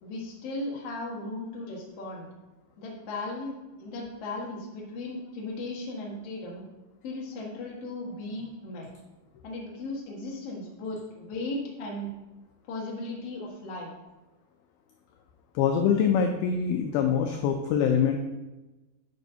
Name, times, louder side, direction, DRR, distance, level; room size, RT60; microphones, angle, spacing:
voice 1, 0.0-2.3 2.8-6.6 7.0-8.9 9.4-12.1 12.6-13.9, left 2 dB, 50° left, -3 dB, 1.9 m, -36 dB
voice 2, 15.6-18.2, left 7 dB, 80° left, 3 dB, 2.2 m, -24 dB
11.0 x 5.3 x 2.7 m, 1.1 s
omnidirectional pair, 4.8 m